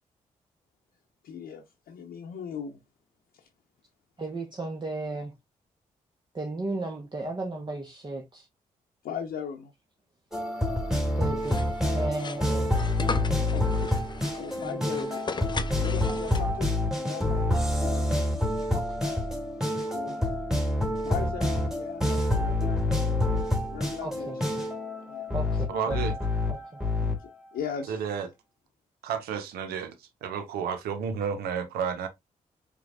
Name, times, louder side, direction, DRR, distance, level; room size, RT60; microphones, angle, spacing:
voice 1, 1.2-2.8 3.3-3.5 9.0-9.7 13.5-13.9 14.4-15.4 15.8-16.7 17.1-18.1 19.9-20.3 21.0-23.0 23.7-24.3 25.1-25.5 27.0-28.0, left 7 dB, 70° left, 0.8 m, -39 dB
voice 2, 4.2-5.3 6.3-8.5 11.1-12.8 14.6-15.1 16.1-16.6 18.7-19.1 20.1-20.2 24.0-24.4 25.3-26.0 26.5-26.8, right 2 dB, 30° right, 1.0 m, -35 dB
sound 1, 10.3-27.2, left 1 dB, 5° right, 1.9 m, -27 dB
sound 2, 11.4-16.8, left 4 dB, 30° left, 0.5 m, -38 dB
voice 3, 25.7-26.1 27.9-28.3 29.0-32.1, right 7 dB, 80° right, 0.7 m, -31 dB
4.8 x 3.4 x 2.4 m
hypercardioid pair, 40°, 16 cm